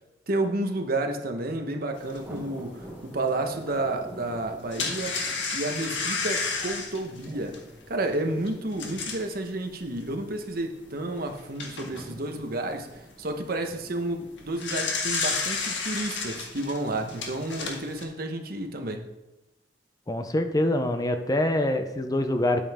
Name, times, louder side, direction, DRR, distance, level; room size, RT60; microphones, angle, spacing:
voice 1, 0.3-5.2 5.5-7.6 7.9-19.0, right 2 dB, 55° right, 5 dB, 1.1 m, -31 dB
Thunder, 1.4-18.4, equal, 10° right, 1.2 m, -48 dB
sound 1, 2.2-2.3 2.8-2.9 4.4-9.3 10.0-10.1 10.5-10.6 11.2-12.1 14.3-18.0, left 4 dB, 80° left, 1.5 m, -31 dB
voice 2, 20.1-22.6, left 1 dB, 20° left, 7 dB, 0.6 m, -25 dB
9.5 x 8.6 x 3.6 m, 1.0 s
head